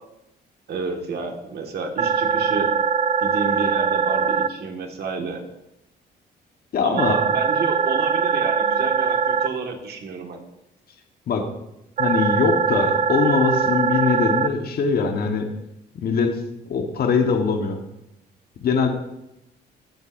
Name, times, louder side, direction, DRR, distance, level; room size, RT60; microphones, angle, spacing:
voice 1, 0.7-2.7 3.2-5.4 6.8-10.4, right 4 dB, 60° right, 2 dB, 1.9 m, -30 dB
sound 1, 2.0-4.5 7.0-9.5 12.0-14.5, right 6 dB, 40° right, 0.5 m, -21 dB
voice 2, 6.7-7.2 11.3-11.4 12.0-15.5 15.9-16.3 16.7-17.8 18.6-18.9, left 5 dB, 60° left, 4 dB, 1.3 m, -22 dB
15.5 x 8.1 x 2.7 m, 0.87 s
cardioid pair, 90°, 18 cm